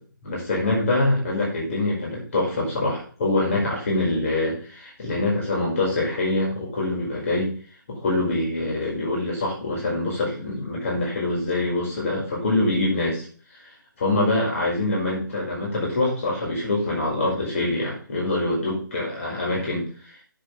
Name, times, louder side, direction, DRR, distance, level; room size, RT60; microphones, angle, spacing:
voice 1, 0.2-7.5 7.9-13.2 14.0-19.8, left 2 dB, 40° left, -4 dB, 5.2 m, -24 dB
7.9 x 6.5 x 5.6 m, 0.42 s
figure-of-eight pair, 145°, 11 cm